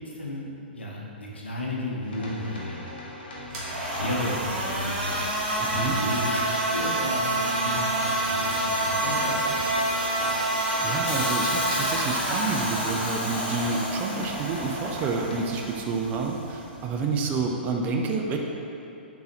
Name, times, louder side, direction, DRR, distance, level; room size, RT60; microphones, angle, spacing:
voice 1, 0.0-2.8 3.5-5.1 5.7-9.6, left 1 dB, 85° left, -3 dB, 0.8 m, -33 dB
sound 1, 2.0-15.7, left 1 dB, 65° left, 1.0 m, -40 dB
sound 2, 3.4-17.5, right 1 dB, 45° right, 1.1 m, -28 dB
voice 2, 5.6-6.0 10.6-18.4, right 4 dB, 25° right, 1 dB, 0.4 m, -29 dB
Hiss, 11.1-15.2 16.2-16.3, left 1 dB, 20° left, 0.9 m, -35 dB
4.0 x 3.8 x 2.9 m, 2.8 s
figure-of-eight pair, 115°, 6 cm